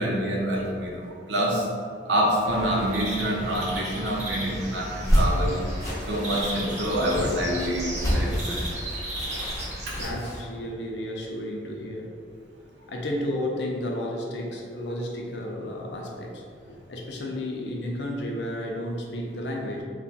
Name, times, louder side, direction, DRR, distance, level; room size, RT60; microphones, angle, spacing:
voice 1, 0.0-1.7 2.1-5.6 6.1-8.7 9.9-10.0, equal, 80° right, -2 dB, 0.7 m, -26 dB
sound 1, 2.4-10.1, right 1 dB, 40° right, 0.8 m, -35 dB
sound 2, 4.8-10.4, equal, 20° left, 0.7 m, -28 dB
voice 2, 9.9-12.1 12.9-16.4 16.7-19.8, left 1 dB, 75° left, 0 dB, 0.6 m, -32 dB
3.2 x 2.3 x 4.0 m, 2.2 s
head